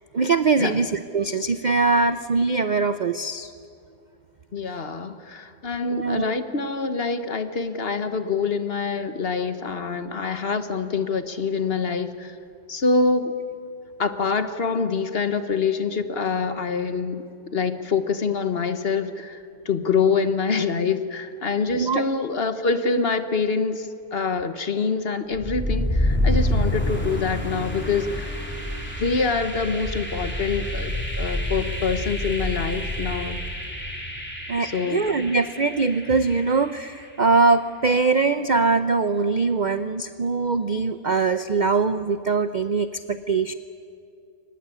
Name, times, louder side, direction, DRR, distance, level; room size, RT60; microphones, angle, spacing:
voice 1, 0.1-3.5 5.9-6.3 21.7-22.0 34.5-43.5, right 4 dB, 50° right, 12 dB, 0.5 m, -22 dB
voice 2, 4.5-12.4 12.7-13.4 14.0-17.2 17.5-28.4 29.0-33.4 34.6-35.0, left 4 dB, 45° left, 10 dB, 1.2 m, -25 dB
sound 1, 25.3-37.2, left 1 dB, 5° left, 3.5 m, -28 dB
24.0 x 19.0 x 9.8 m, 2.4 s
omnidirectional pair, 1.6 m